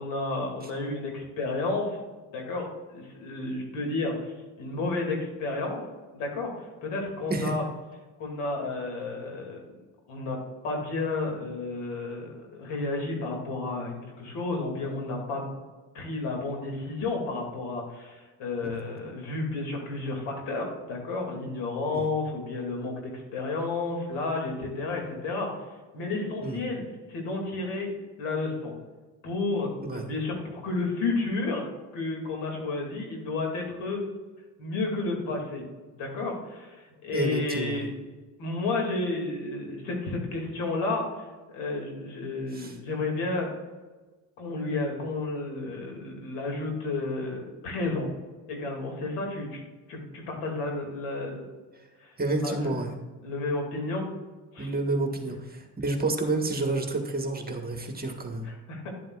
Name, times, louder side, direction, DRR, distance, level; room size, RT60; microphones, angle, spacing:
voice 1, 0.0-2.0 2.3-5.8 6.1-7.6 8.2-9.8 10.1-10.4 10.6-15.4 15.9-25.5 25.9-26.8 27.1-27.9 28.2-28.7 29.2-31.7 31.9-34.0 34.6-35.6 35.9-37.9 38.4-43.5 44.4-48.1 48.5-49.6 49.9-51.4 52.0-52.2 52.4-52.6 53.2-54.0 54.5-54.7 58.4-58.9, left 3 dB, 75° left, 1 dB, 2.6 m, -31 dB
voice 2, 37.1-37.9 42.5-42.7 51.7-51.9 52.2-52.9 54.6-58.5, right 2 dB, 20° right, 3 dB, 1.5 m, -29 dB
11.5 x 7.6 x 2.4 m, 1.3 s
supercardioid pair, 75°, 44 cm